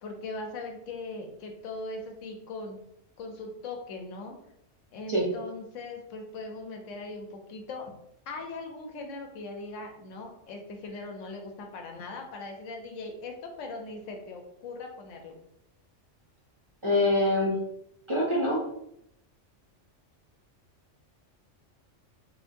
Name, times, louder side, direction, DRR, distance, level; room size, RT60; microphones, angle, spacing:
voice 1, 0.0-2.8 3.2-4.3 4.9-7.9 8.3-15.4, left 3 dB, 80° left, 2 dB, 1.0 m, -40 dB
voice 2, 16.8-17.6 18.1-18.6, left 1 dB, 35° right, -5 dB, 0.5 m, -24 dB
3.9 x 2.2 x 2.5 m, 0.78 s
omnidirectional pair, 1.3 m